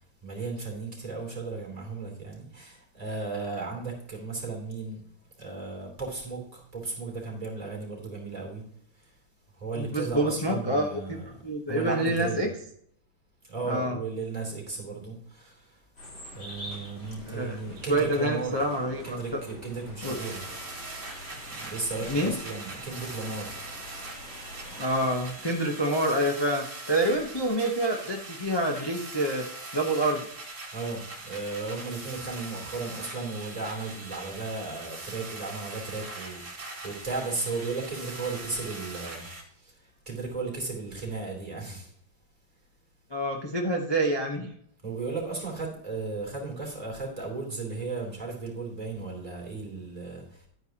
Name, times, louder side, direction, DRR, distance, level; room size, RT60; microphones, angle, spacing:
voice 1, 0.2-5.0 5.4-8.6 9.6-11.2 11.7-12.5 13.5-15.8 16.3-18.6 19.0-20.4 21.3-23.6 30.7-39.3 39.6-41.9 44.8-50.5, right 3 dB, 15° right, 3.1 m, -35 dB
voice 2, 9.8-11.2 11.4-12.5 13.6-14.0 17.2-19.4 20.0-20.2 22.0-22.3 24.8-29.5 29.7-30.3 43.1-44.5, right 1 dB, 35° left, 0.4 m, -27 dB
sound 1, 16.0-25.3, left 1 dB, 65° left, 4.5 m, -46 dB
sound 2, 20.0-39.4, right 2 dB, 35° right, 2.1 m, -41 dB
10.5 x 9.4 x 2.9 m
omnidirectional pair, 2.3 m